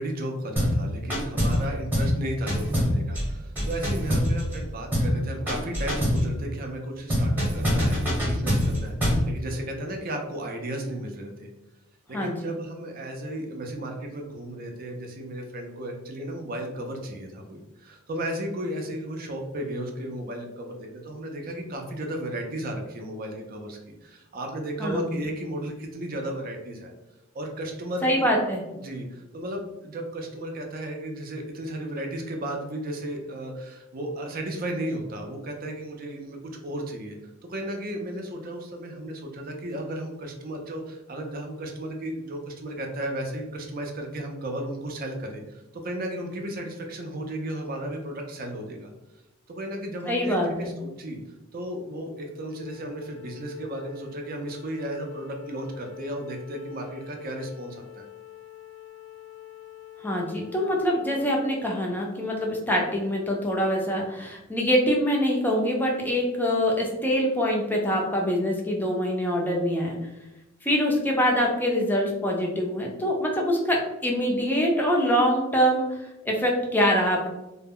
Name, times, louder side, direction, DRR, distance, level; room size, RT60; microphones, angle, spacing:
voice 1, 0.0-11.5 12.1-26.9 27.3-28.3 28.8-37.2 37.4-48.9 49.5-51.2 51.5-58.0, right 1 dB, 45° right, 3 dB, 0.5 m, -34 dB
sound 1, 0.6-0.8 1.1-1.6 1.9-2.2 2.5-4.6 4.9-5.2 5.5-6.3 7.1-9.3, equal, 10° right, 0.8 m, -24 dB
voice 2, 12.1-12.6 24.8-25.1 28.0-28.6 50.1-50.8 60.0-70.0 70.6-77.3, equal, 10° left, -1 dB, 0.4 m, -24 dB
Wind instrument woodwind instrument, 52.5-61.7, left 14 dB, 70° left, 0.4 m, -45 dB
2.1 x 2.0 x 3.5 m, 0.98 s
head